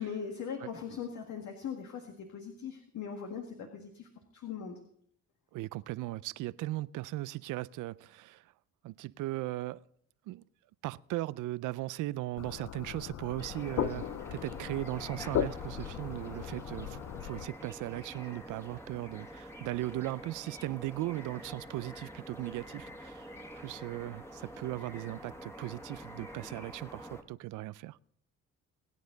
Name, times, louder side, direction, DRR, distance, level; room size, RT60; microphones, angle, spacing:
voice 1, 0.0-4.1 4.3-4.8, left 7 dB, 75° left, 1.9 m, -40 dB
voice 2, 5.5-8.5 8.8-9.8 10.3-10.4 10.8-23.3 23.5-28.0, right 17 dB, 85° right, 0.5 m, -38 dB
sound 1, 12.4-17.5, left 11 dB, 60° left, 0.6 m, -37 dB
sound 2, 13.4-27.2, equal, 10° left, 1.9 m, -47 dB
22.5 x 9.4 x 3.9 m
cardioid pair, 90°, 30 cm